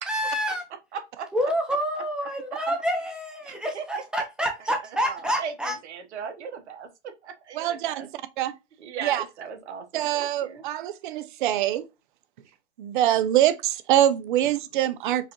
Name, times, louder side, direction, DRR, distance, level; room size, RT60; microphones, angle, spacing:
voice 1, 0.1-0.6 1.3-5.8, equal, ahead, 0.8 m, -28 dB
voice 2, 0.9-1.3 3.5-3.8 5.0-5.5 5.8-6.9 7.2-8.1 8.8-10.6 12.4-12.5, right 7 dB, 70° right, 1.1 m, -37 dB
voice 3, 7.5-8.0 8.4-8.5 9.0-9.2 9.9-11.8 12.8-15.3, right 12 dB, 45° right, 0.5 m, -24 dB
4.8 x 2.4 x 2.9 m
hypercardioid pair, 135°, 36 cm